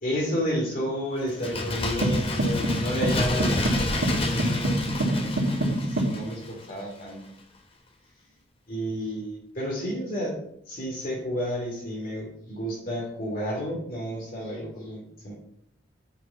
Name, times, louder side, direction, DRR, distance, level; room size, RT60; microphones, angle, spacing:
voice 1, 0.0-7.2 8.7-10.4 10.7-15.3, equal, 45° left, -4 dB, 2.9 m, -31 dB
Bird, 1.3-6.8 7.1-7.2, left 2 dB, 30° left, 1.1 m, -30 dB
sound 1, 2.0-6.2, right 1 dB, 70° right, 2.3 m, -26 dB
10.5 x 5.9 x 4.4 m, 0.69 s
head